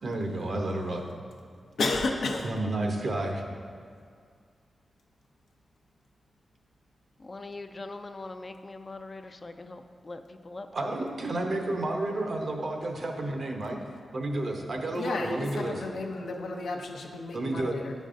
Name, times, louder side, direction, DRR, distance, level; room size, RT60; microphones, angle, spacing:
voice 1, 0.0-1.3 2.4-3.4 10.7-13.8 14.1-15.8 17.3-17.8, right 2 dB, 60° right, 2 dB, 0.7 m, -31 dB
voice 2, 1.8-2.5 15.0-17.9, left 3 dB, 85° left, 2 dB, 0.6 m, -32 dB
voice 3, 7.2-10.7, left 2 dB, 35° left, 8 dB, 0.3 m, -42 dB
9.1 x 5.2 x 2.5 m, 2.1 s
cardioid pair, 80°, 0 cm